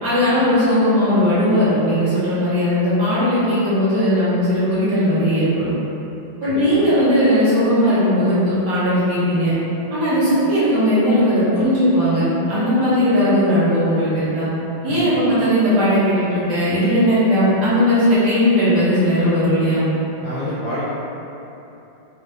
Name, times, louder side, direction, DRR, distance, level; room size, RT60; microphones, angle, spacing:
voice 1, 0.0-5.7 6.4-9.5 9.9-14.5 14.8-19.8, equal, 55° right, -12 dB, 1.6 m, -17 dB
voice 2, 6.4-6.8 14.8-15.1 20.2-20.8, left 1 dB, 85° left, -8 dB, 0.8 m, -28 dB
4.3 x 2.3 x 3.0 m, 3.0 s
omnidirectional pair, 2.3 m